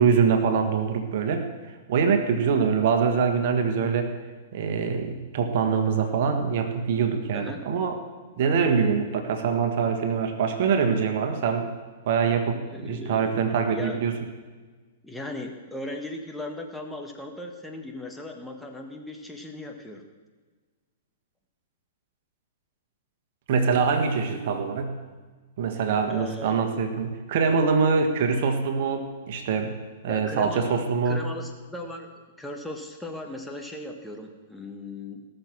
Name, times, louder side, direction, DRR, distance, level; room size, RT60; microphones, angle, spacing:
voice 1, 0.0-1.5 1.9-4.2 4.5-8.0 8.4-11.7 12.0-14.1 23.5-25.0 25.6-29.8 30.0-31.2, right 6 dB, 55° right, 6 dB, 1.6 m, -24 dB
voice 2, 12.7-13.4 13.7-14.0 15.0-20.0 26.1-26.6 30.1-30.7 31.0-32.1 32.4-35.3, left 1 dB, 5° left, 2 dB, 1.5 m, -37 dB
18.5 x 6.8 x 6.2 m, 1.4 s
hypercardioid pair, 110°, 0 cm